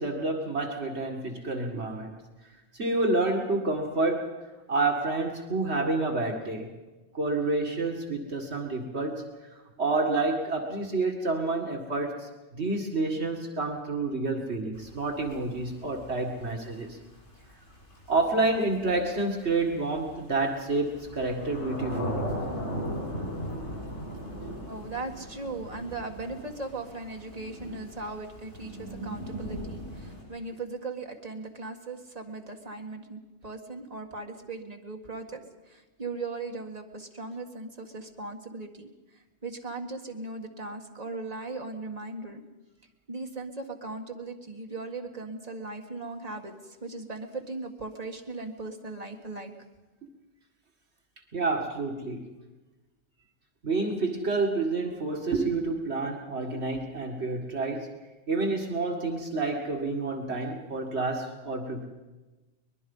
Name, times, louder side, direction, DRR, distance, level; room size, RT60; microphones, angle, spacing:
voice 1, 0.0-2.1 2.7-4.3 4.7-6.7 7.1-9.2 9.8-17.0 18.1-22.3 51.3-52.3 53.6-57.9 58.3-61.9, right 3 dB, 70° right, 2 dB, 2.2 m, -29 dB
Thunder / Rain, 14.7-30.2, equal, 80° left, 7.5 m, -38 dB
voice 2, 24.7-42.4 43.1-49.5, right 3 dB, 35° right, 3 dB, 1.8 m, -38 dB
23.5 x 21.0 x 5.5 m, 1.1 s
omnidirectional pair, 1.2 m